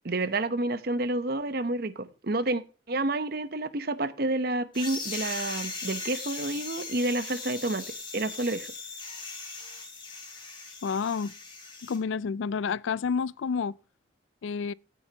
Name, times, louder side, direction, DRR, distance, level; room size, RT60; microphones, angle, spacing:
voice 1, 0.0-8.7, right 2 dB, 50° right, 0.8 m, -29 dB
sound 1, 4.7-12.0, left 4 dB, 25° left, 3.6 m, -39 dB
voice 2, 10.8-11.3 11.8-13.7 14.4-14.7, left 5 dB, 75° left, 0.4 m, -29 dB
16.0 x 7.8 x 2.9 m
head